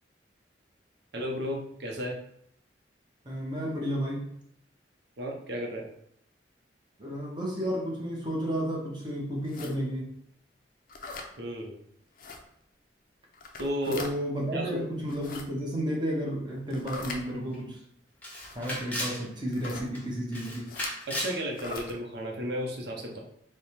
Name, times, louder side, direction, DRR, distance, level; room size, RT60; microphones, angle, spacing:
voice 1, 1.1-2.2 5.2-5.8 11.4-11.7 13.6-14.1 14.5-14.8 21.1-23.2, equal, 65° right, 0 dB, 0.8 m, -33 dB
voice 2, 3.2-4.3 7.0-10.1 13.9-17.8 18.5-20.6, equal, 25° right, -2 dB, 0.9 m, -32 dB
sound 1, 9.4-9.7 10.9-11.3 12.2-12.4 13.3-14.1 15.0-15.4 16.7-17.2 18.4-18.8 19.5-19.9 20.6-20.9 21.5-21.9, left 3 dB, 50° left, 0.5 m, -41 dB
Camera, 17.1-17.2 17.5-17.6 18.2-19.2 19.6-20.0 20.3-21.4, equal, 10° left, 0.7 m, -35 dB
3.3 x 2.1 x 4.3 m, 0.72 s
head